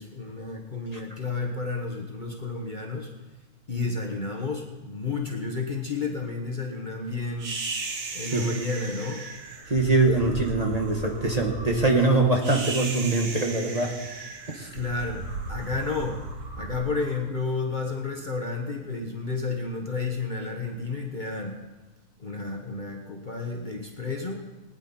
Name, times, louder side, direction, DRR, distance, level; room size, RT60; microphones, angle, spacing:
voice 1, 0.0-3.1 3.7-7.5 8.1-9.2 14.7-15.2 15.5-16.2 16.5-21.6 22.2-24.4, left 3 dB, 35° left, 1 dB, 1.2 m, -31 dB
sound 1, 7.4-17.8, right 3 dB, 80° right, 2.0 m, -36 dB
voice 2, 9.7-14.0 14.5-14.7, right 2 dB, 25° right, 0 dB, 1.5 m, -23 dB
19.5 x 10.0 x 4.3 m, 1.1 s
omnidirectional pair, 1.6 m